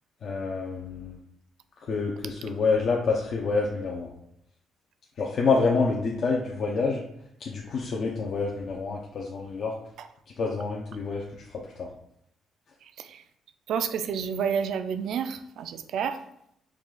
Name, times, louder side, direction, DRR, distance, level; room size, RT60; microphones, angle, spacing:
voice 1, 0.2-1.2 1.8-4.1 5.2-7.0 7.4-9.8 10.3-11.9, left 4 dB, 60° left, -2 dB, 0.6 m, -27 dB
voice 2, 13.7-16.2, right 7 dB, 75° right, 10 dB, 0.3 m, -29 dB
4.8 x 2.4 x 3.7 m, 0.75 s
cardioid pair, 90°, 0 cm